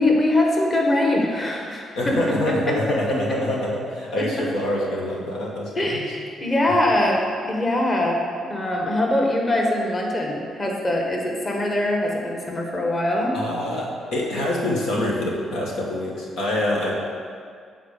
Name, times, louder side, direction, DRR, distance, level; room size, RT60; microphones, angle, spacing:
voice 1, 0.0-2.8 4.2-4.4 5.7-13.4, left 1 dB, 30° left, 0 dB, 1.3 m, -23 dB
voice 2, 1.9-6.0 13.3-16.9, left 1 dB, 90° left, -3 dB, 1.4 m, -25 dB
8.3 x 4.0 x 6.6 m, 2.2 s
cardioid pair, 90°, 0 cm